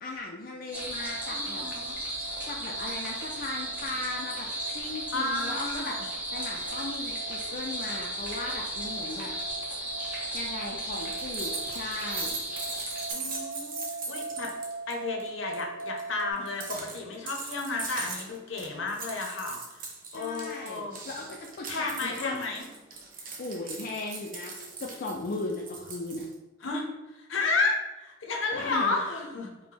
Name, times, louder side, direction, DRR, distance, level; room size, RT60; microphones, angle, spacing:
voice 1, 0.0-1.6 2.5-4.5 4.7-6.0 6.3-9.3 10.1-12.4 20.1-22.4 23.4-26.3 28.5-29.0, left 2 dB, 50° left, -1 dB, 0.4 m, -37 dB
sound 1, 0.7-13.1, right 1 dB, 10° right, 0.9 m, -35 dB
sound 2, 0.7-16.3, right 3 dB, 85° right, 0.6 m, -42 dB
voice 2, 1.3-2.0 5.1-6.0 13.1-13.7 14.1-14.5 14.9-19.6 20.1-21.0 21.7-22.6 26.6-26.9 27.1-29.5, left 3 dB, 70° left, 1 dB, 0.7 m, -32 dB
sound 3, 10.9-14.9 15.2-15.3 15.5-26.3, right 4 dB, 45° right, 0.7 m, -40 dB
5.0 x 2.1 x 3.3 m, 1.1 s
head